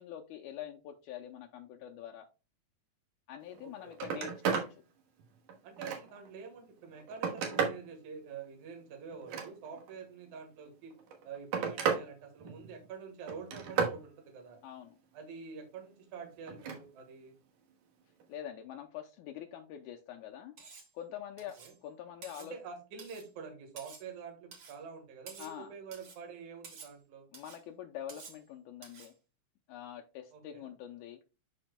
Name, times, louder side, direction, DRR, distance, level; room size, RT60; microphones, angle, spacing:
voice 1, 0.0-2.3 3.3-4.8 14.6-15.0 18.3-20.6 20.9-22.6 25.4-25.7 27.3-29.1 29.7-31.2, left 10 dB, 80° left, 3 dB, 1.9 m, -45 dB
Telephone, 3.5-3.6 3.9-4.7 5.2-6.3 6.8-7.9 9.1-9.9 10.9-12.1 12.4-12.9 13.3-14.0 16.5-16.8 18.2-18.3, right 6 dB, 85° right, 2.8 m, -34 dB
voice 2, 3.6-3.9 5.6-10.9 11.2-14.6 15.1-17.3 21.6-21.7 22.4-27.3 30.3-30.7, right 5 dB, 70° right, 3 dB, 2.8 m, -47 dB
Cutlery silverware, 20.6-20.9 21.4-21.8 22.2-22.5 23.0-23.3 23.8-24.1 24.5-24.8 25.3-25.6 25.9-26.2 26.6-27.0 27.3-27.6 28.1-28.4 28.8-29.1, right 5 dB, 50° right, 1.9 m, -51 dB
11.5 x 4.3 x 2.2 m, 0.30 s
omnidirectional pair, 3.6 m